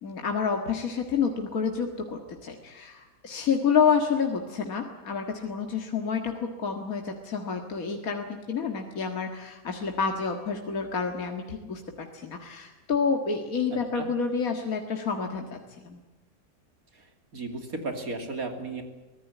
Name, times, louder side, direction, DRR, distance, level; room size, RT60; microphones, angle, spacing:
voice 1, 0.0-15.6 15.8-16.0, left 6 dB, 75° left, 3 dB, 2.2 m, -29 dB
voice 2, 17.3-18.8, right 3 dB, 75° right, 5 dB, 3.3 m, -34 dB
24.0 x 16.5 x 9.3 m, 1.2 s
omnidirectional pair, 1.5 m